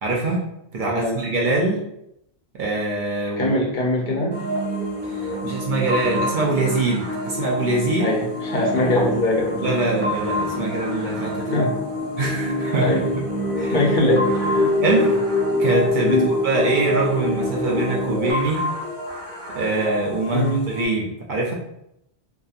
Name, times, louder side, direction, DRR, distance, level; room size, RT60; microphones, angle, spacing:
voice 1, 0.0-0.4 0.7-1.8 2.5-3.6 5.1-8.2 9.6-11.7 12.2-13.0 13.6-13.8 14.8-15.2 15.6-18.7 19.5-21.5, right 2 dB, 55° right, -2 dB, 0.6 m, -23 dB
voice 2, 0.9-1.3 3.4-4.4 8.0-9.7 11.5-11.7 12.8-13.0 13.7-14.7 16.1-16.3 20.3-20.7, left 1 dB, 60° left, -3 dB, 0.6 m, -22 dB
sound 1, 4.0-18.3, left 1 dB, 35° right, 1.1 m, -26 dB
sound 2, 4.3-20.9, equal, 15° right, 0.7 m, -30 dB
2.7 x 2.3 x 2.4 m, 0.79 s
omnidirectional pair, 1.1 m